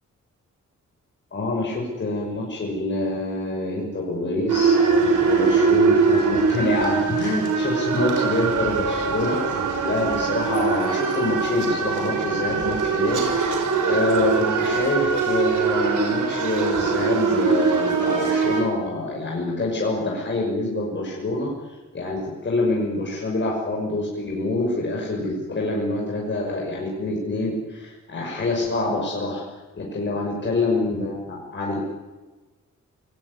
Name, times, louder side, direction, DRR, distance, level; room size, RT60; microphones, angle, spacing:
voice 1, 1.3-29.4 29.7-31.8, left 2 dB, 40° left, -2 dB, 6.0 m, -26 dB
sound 1, 4.5-18.6, right 5 dB, 80° right, 6.7 m, -22 dB
28.0 x 20.0 x 9.7 m, 1.2 s
wide cardioid pair, 170°, 30 cm